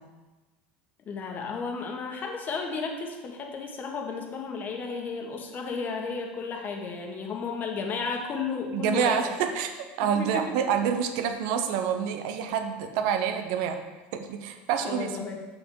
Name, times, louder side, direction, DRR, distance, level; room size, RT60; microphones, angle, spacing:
voice 1, 1.1-9.3 10.1-10.5 14.8-15.4, left 5 dB, 35° left, 2 dB, 1.3 m, -33 dB
voice 2, 8.7-9.7 10.0-13.8 14.1-15.1, right 8 dB, 70° right, 7 dB, 0.9 m, -27 dB
6.4 x 5.9 x 4.7 m, 1.2 s
supercardioid pair, 110°, 5 cm